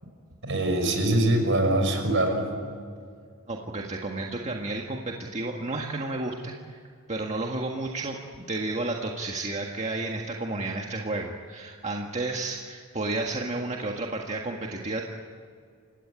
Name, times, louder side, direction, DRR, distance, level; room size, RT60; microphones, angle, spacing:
voice 1, 0.4-2.5, right 1 dB, 60° right, 5 dB, 5.9 m, -23 dB
voice 2, 3.5-6.8 7.1-15.0, right 2 dB, 30° right, 0 dB, 1.7 m, -32 dB
29.5 x 17.0 x 9.8 m, 2.2 s
head